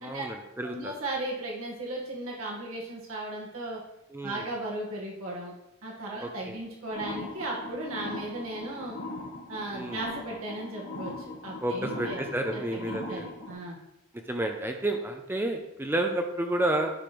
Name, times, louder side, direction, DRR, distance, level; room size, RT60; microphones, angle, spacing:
voice 1, 0.0-0.9 4.1-4.5 6.2-6.6 9.7-10.0 11.6-13.3 14.3-16.9, right 1 dB, 10° right, 4 dB, 0.6 m, -30 dB
voice 2, 0.7-3.8 4.2-5.5 5.8-9.0 9.5-11.1 11.4-13.8, right 1 dB, 85° right, -4 dB, 2.0 m, -36 dB
sound 1, 6.9-13.5, left 2 dB, 85° left, 1.9 m, -40 dB
9.9 x 3.3 x 6.0 m, 0.88 s
head